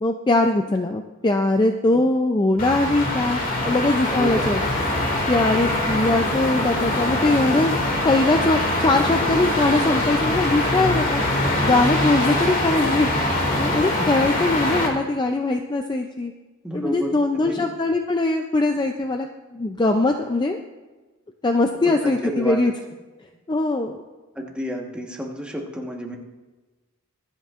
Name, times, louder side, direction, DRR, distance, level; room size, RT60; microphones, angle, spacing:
voice 1, 0.0-3.4 3.7-4.6 5.3-7.8 8.0-11.2 11.6-16.3 16.7-19.3 19.5-20.6 21.4-22.7 23.5-24.0, left 2 dB, 20° left, 4 dB, 0.4 m, -21 dB
sound 1, 2.6-14.9, left 1 dB, 40° left, 2.1 m, -23 dB
voice 2, 4.1-4.5 13.9-14.2 16.6-17.7 22.0-22.6 24.3-26.2, equal, 5° right, -1 dB, 1.2 m, -30 dB
24.5 x 8.1 x 2.5 m, 1.2 s
head